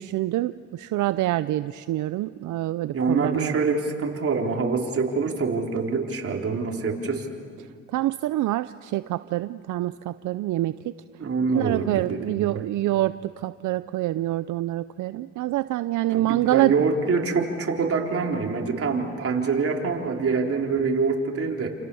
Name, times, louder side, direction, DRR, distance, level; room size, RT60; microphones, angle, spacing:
voice 1, 0.0-3.5 7.9-10.9 11.5-16.7, right 15 dB, 80° right, 14 dB, 0.6 m, -26 dB
voice 2, 2.9-7.3 11.2-12.6 16.1-21.7, right 4 dB, 50° right, 1 dB, 3.9 m, -25 dB
29.0 x 28.0 x 7.1 m, 2.2 s
cardioid pair, 90°, 30 cm